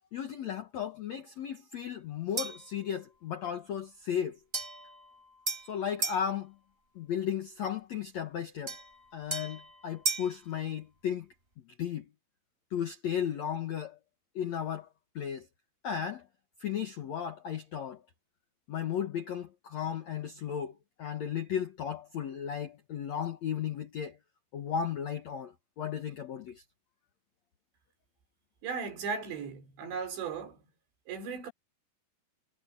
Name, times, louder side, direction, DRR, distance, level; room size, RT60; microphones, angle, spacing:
voice 1, 0.1-4.4 5.7-6.5 6.9-8.7 9.1-11.3 11.8-12.1 12.7-14.0 14.3-14.9 15.1-15.5 15.8-16.3 16.6-18.0 18.7-24.2 24.5-26.6, left 8 dB, 75° left, 1.6 m, -35 dB
sound 1, 2.4-2.7 4.5-6.3 8.7-10.4, right 3 dB, 15° right, 3.5 m, -36 dB
voice 2, 28.6-30.6 31.1-31.5, right 5 dB, 85° right, 6.9 m, -36 dB
omnidirectional pair, 5.0 m